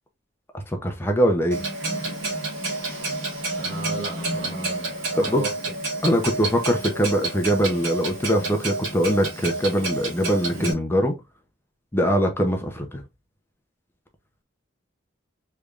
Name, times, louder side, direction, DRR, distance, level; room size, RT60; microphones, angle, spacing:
voice 1, 0.8-1.6 5.2-5.4 6.0-11.1 11.9-13.0, equal, 10° left, 0.6 m, -22 dB
Clock, 1.5-10.7, right 2 dB, 85° right, 1.7 m, -29 dB
voice 2, 3.6-5.5, right 3 dB, 60° right, 1.0 m, -34 dB
3.4 x 3.3 x 2.4 m
head